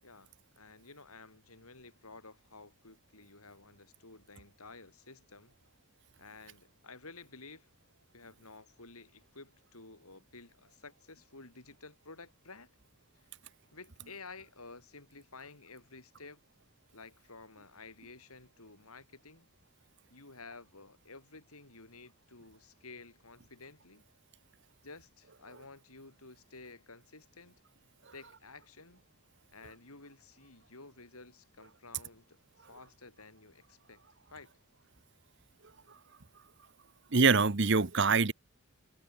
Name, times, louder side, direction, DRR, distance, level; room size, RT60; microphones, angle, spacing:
voice 1, 0.0-5.5 6.2-7.7 8.1-12.7 13.1-13.3 13.7-16.4 16.9-19.5 20.1-24.1 24.8-27.6 28.1-29.0 29.5-34.0 34.3-34.5, left 3 dB, 80° left, 6.6 m, -53 dB
voice 2, 37.1-38.3, right 4 dB, 50° right, 1.1 m, -24 dB
head